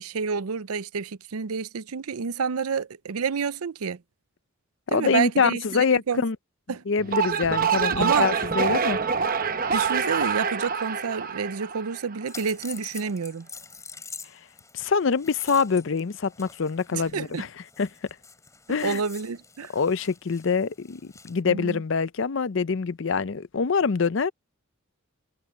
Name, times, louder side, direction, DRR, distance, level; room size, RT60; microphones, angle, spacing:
voice 1, 0.0-4.0 4.9-5.6 6.1-6.2 6.7-6.8 7.9-8.3 9.7-13.5 16.9-17.5 18.8-19.7 21.5-21.8, right 6 dB, 90° right, 0.6 m, -29 dB
voice 2, 4.9-6.4 6.9-9.0 14.7-17.5 17.8-17.9 18.7-19.0 19.7-24.3, left 5 dB, 60° left, 0.5 m, -25 dB
sound 1, 7.0-12.3, right 6 dB, 40° right, 0.9 m, -26 dB
sound 2, 12.3-21.4, left 5 dB, 15° left, 6.0 m, -46 dB
head